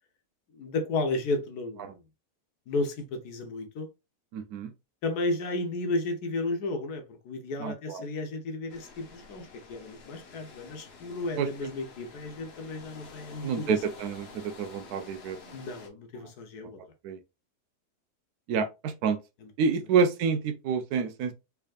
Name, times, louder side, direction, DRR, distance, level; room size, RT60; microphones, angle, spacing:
voice 1, 0.5-2.0 2.7-3.9 5.0-13.8 15.5-16.8, left 2 dB, 75° left, 1.4 m, -33 dB
voice 2, 4.3-4.7 7.6-8.0 11.4-11.5 13.4-15.6 16.2-16.3 17.0-17.2 18.5-19.2 19.6-21.3, right 6 dB, 75° right, 1.1 m, -28 dB
sound 1, 8.7-15.9, left 4 dB, 50° left, 0.9 m, -49 dB
3.5 x 3.4 x 2.4 m
omnidirectional pair, 1.7 m